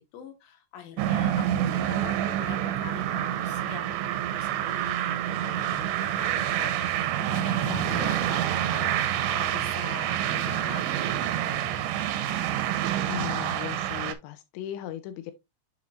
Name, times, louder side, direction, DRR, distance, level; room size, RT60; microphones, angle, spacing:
voice 1, 0.1-8.4 8.7-11.7, left 8 dB, 65° left, 2.8 m, -44 dB
sound 1, 1.0-14.1, right 11 dB, 85° right, 2.9 m, -27 dB
voice 2, 7.7-8.1 13.1-15.3, left 12 dB, 90° left, 3.0 m, -37 dB
7.3 x 6.3 x 2.4 m
omnidirectional pair, 5.0 m